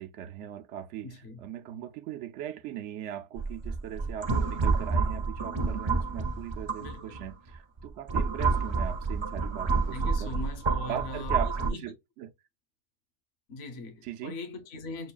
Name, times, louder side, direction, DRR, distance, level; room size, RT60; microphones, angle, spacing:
voice 1, 0.0-10.3 10.9-12.3 14.0-14.4, right 10 dB, 85° right, 0.9 m, -39 dB
voice 2, 1.0-1.5 6.8-7.2 9.9-11.9 13.5-15.1, left 2 dB, 65° left, 1.1 m, -40 dB
sound 1, 3.4-7.2 7.8-11.7, right 4 dB, 35° right, 0.4 m, -29 dB
6.2 x 2.4 x 2.2 m
omnidirectional pair, 1.2 m